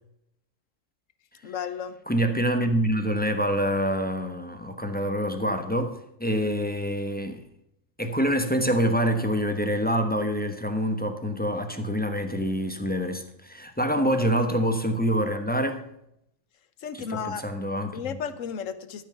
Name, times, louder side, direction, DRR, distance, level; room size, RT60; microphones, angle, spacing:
voice 1, 1.4-2.0 16.8-17.5 17.9-19.1, left 7 dB, 75° left, 12 dB, 1.2 m, -33 dB
voice 2, 2.1-7.4 8.0-15.8 16.9-17.9, equal, 5° left, 6 dB, 1.1 m, -26 dB
13.0 x 6.3 x 5.8 m, 0.78 s
omnidirectional pair, 1.4 m